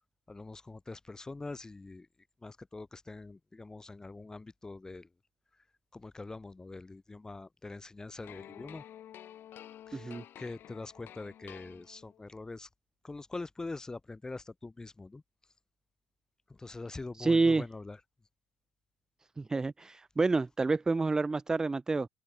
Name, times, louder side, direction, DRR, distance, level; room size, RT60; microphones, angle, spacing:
voice 1, 0.3-2.1 2.4-5.1 5.9-8.8 9.9-12.7 13.0-15.2 16.5-18.0, left 3 dB, 10° left, 1.3 m, -44 dB
sound 1, 8.2-12.3, left 11 dB, 40° left, 1.1 m, -51 dB
voice 2, 9.9-10.2 17.2-17.6 19.4-22.1, right 3 dB, 10° right, 0.4 m, -28 dB
supercardioid pair, 125°, 5 cm